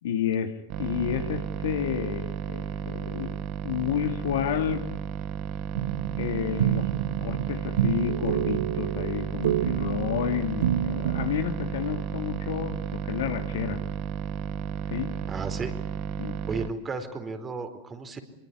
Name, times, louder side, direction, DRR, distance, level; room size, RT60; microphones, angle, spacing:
voice 1, 0.0-3.4 3.6-4.8 6.2-6.9 7.2-13.8 14.9-15.1 16.2-16.4, left 8 dB, 65° left, 6 dB, 2.9 m, -30 dB
sound 1, 0.7-16.7, right 8 dB, 45° right, 1.9 m, -33 dB
sound 2, 5.8-11.3, right 12 dB, 65° right, 1.0 m, -28 dB
voice 2, 15.3-15.7 16.5-18.2, right 4 dB, 20° right, 7 dB, 4.5 m, -33 dB
25.5 x 23.5 x 9.8 m, 0.82 s
figure-of-eight pair, 90°, 0 cm